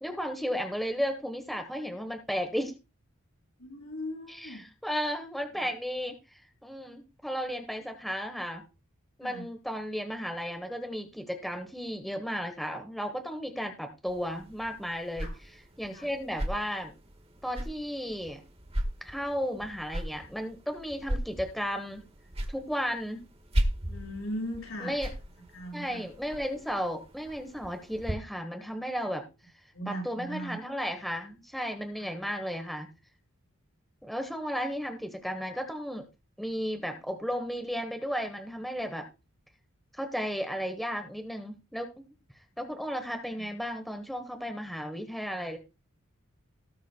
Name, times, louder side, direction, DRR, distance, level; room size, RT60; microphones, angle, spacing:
voice 1, 0.0-2.7 4.3-8.6 9.2-16.9 17.4-18.4 19.0-22.0 22.5-23.2 24.8-25.1 25.7-29.3 29.8-32.9 34.0-36.0 36.4-39.0 39.9-41.9 42.3-45.6, equal, ahead, 5 dB, 1.2 m, -34 dB
voice 2, 3.6-4.6 9.2-9.4 15.2-15.3 15.9-16.1 23.9-24.9 25.5-26.0 29.7-30.6, equal, 70° left, 0 dB, 7.0 m, -38 dB
sound 1, 14.1-28.1, equal, 30° right, 1.6 m, -37 dB
18.5 x 7.4 x 2.3 m, 0.28 s
head